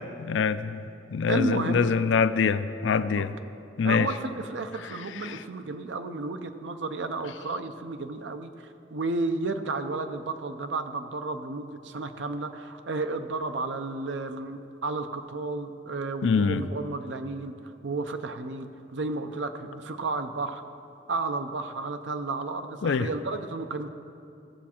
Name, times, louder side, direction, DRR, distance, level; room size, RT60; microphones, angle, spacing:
voice 1, 0.3-3.3 3.8-4.1 5.2-5.4 16.2-16.7 22.8-23.1, left 5 dB, 80° left, 12 dB, 0.4 m, -24 dB
voice 2, 1.3-2.0 3.4-3.5 3.8-8.5 8.9-17.5 17.8-20.6 21.1-23.9, right 3 dB, 75° right, 9 dB, 0.6 m, -32 dB
15.0 x 7.2 x 4.4 m, 2.6 s
head